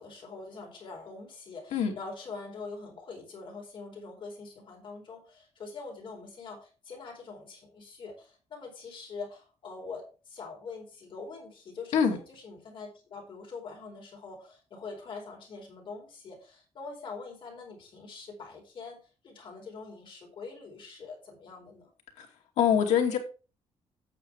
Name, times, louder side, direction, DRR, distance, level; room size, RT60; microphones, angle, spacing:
voice 1, 0.0-21.9, left 4 dB, 45° left, 1 dB, 4.5 m, -44 dB
voice 2, 22.6-23.2, left 8 dB, 80° left, 2 dB, 2.5 m, -24 dB
8.8 x 6.9 x 4.8 m, 0.34 s
cardioid pair, 160°, 12 cm